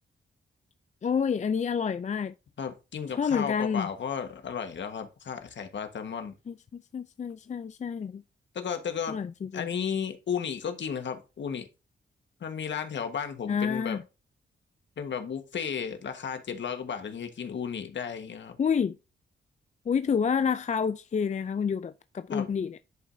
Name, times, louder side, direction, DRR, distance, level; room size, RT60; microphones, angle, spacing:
voice 1, 1.0-2.3 3.2-3.9 6.5-8.2 9.1-9.7 13.5-14.0 18.6-19.0 19.9-22.8, left 6 dB, 35° left, 0.4 m, -28 dB
voice 2, 2.6-6.3 8.5-9.2 9.5-11.7 12.4-14.0 15.0-18.6 22.3-22.5, left 7 dB, 70° left, 1.4 m, -34 dB
11.0 x 5.3 x 2.7 m
cardioid pair, 80°, 20 cm